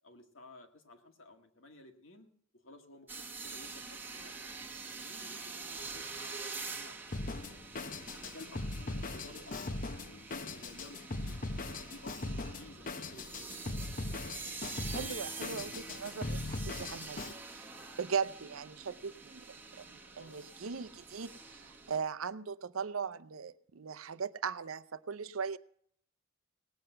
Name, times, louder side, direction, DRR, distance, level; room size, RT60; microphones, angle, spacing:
voice 1, 0.0-2.3 2.5-4.5 4.8-7.0 7.4-7.5 7.7-7.9 8.1-11.4 11.8-14.4 20.0-20.4, left 2 dB, 70° left, 5 dB, 2.0 m, -55 dB
sound 1, 3.1-22.0, right 4 dB, 10° right, 1.2 m, -46 dB
Drum kit, 7.1-17.3, left 2 dB, 40° left, 0.8 m, -40 dB
voice 2, 14.9-17.7 18.0-25.6, right 6 dB, 85° right, 12 dB, 0.6 m, -39 dB
18.5 x 7.8 x 7.8 m, 0.63 s
head